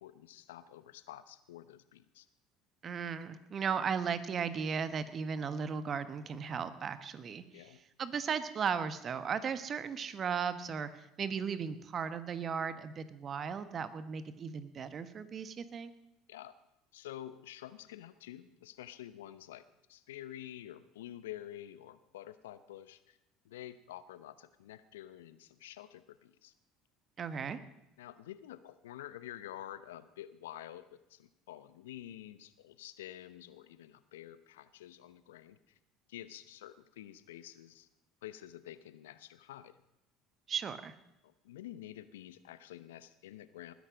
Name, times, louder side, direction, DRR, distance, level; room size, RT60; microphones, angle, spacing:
voice 1, 0.0-2.3 7.5-7.8 16.3-16.6 16.9-23.2 23.4-26.5 28.0-35.8 36.1-37.9 38.2-39.8 41.2-43.7, left 12 dB, 80° left, 14 dB, 0.8 m, -49 dB
voice 2, 2.8-7.7 8.0-15.9 27.2-27.6 40.5-40.9, right 6 dB, 40° right, 12 dB, 1.3 m, -36 dB
20.0 x 10.5 x 5.2 m, 0.87 s
hypercardioid pair, 65°, 0 cm